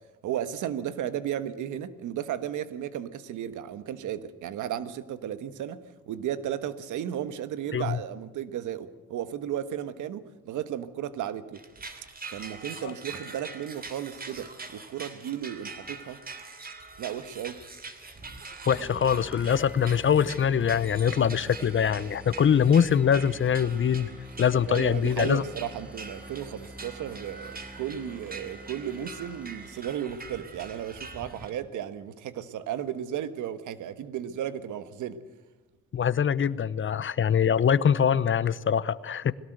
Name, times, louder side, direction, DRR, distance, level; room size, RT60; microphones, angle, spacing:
voice 1, 0.2-11.6 12.3-16.2 17.0-17.6 24.7-35.2, right 10 dB, 80° right, 13 dB, 1.4 m, -34 dB
sound 1, 11.5-31.5, right 4 dB, 30° right, 3.0 m, -44 dB
voice 2, 18.7-24.1 24.4-25.4 35.9-39.3, left 8 dB, 40° left, 17 dB, 0.9 m, -23 dB
sound 2, 18.7-30.1, right 1 dB, 5° right, 0.8 m, -47 dB
21.0 x 17.5 x 7.9 m, 1.2 s
cardioid pair, 90°, 30 cm